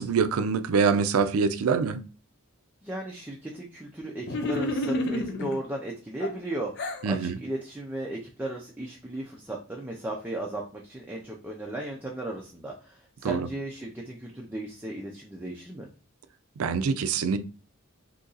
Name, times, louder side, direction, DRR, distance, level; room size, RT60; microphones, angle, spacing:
voice 1, 0.0-2.0 7.0-7.4 13.2-13.5 16.6-17.4, right 5 dB, 80° right, 0.4 m, -25 dB
voice 2, 2.8-15.9, right 1 dB, 10° right, 0.4 m, -36 dB
sound 1, 4.2-5.6 6.2-7.1, left 1 dB, 50° left, 0.5 m, -30 dB
2.8 x 2.6 x 3.8 m
head